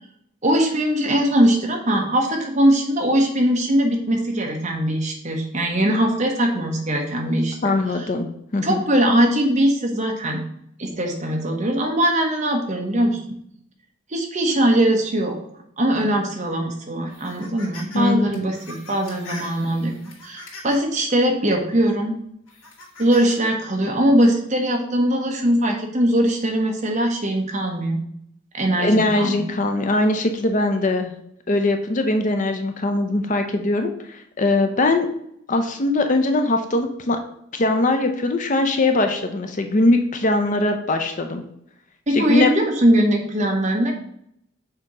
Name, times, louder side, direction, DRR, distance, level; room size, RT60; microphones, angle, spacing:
voice 1, 0.4-8.1 8.6-10.4 10.8-13.4 14.1-15.4 15.8-19.9 20.2-22.1 23.0-28.0 28.5-29.4 42.1-43.9, right 1 dB, 35° right, 2 dB, 0.9 m, -21 dB
voice 2, 7.6-8.8 17.9-18.3 28.8-31.1 31.5-35.1 35.5-37.2 37.5-41.4 42.1-42.5, left 2 dB, 40° left, 5 dB, 0.5 m, -21 dB
sound 1, 17.1-18.0 18.3-20.9 21.5-21.7 22.5-23.4, left 2 dB, 80° left, 2.2 m, -41 dB
6.7 x 2.9 x 4.8 m, 0.73 s
head